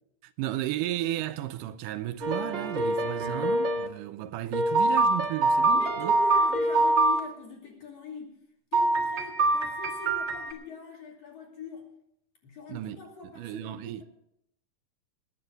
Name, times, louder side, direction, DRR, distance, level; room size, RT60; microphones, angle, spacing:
voice 1, 0.2-6.1 12.7-13.0 13.4-14.0, right 13 dB, 80° right, 2.1 m, -34 dB
sound 1, 2.2-3.9 4.5-7.2 8.7-10.5, right 2 dB, 40° right, 1.9 m, -25 dB
voice 2, 5.7-8.4 8.7-11.9 12.4-14.0, left 4 dB, 50° left, 3.7 m, -42 dB
21.5 x 10.0 x 4.0 m
omnidirectional pair, 3.8 m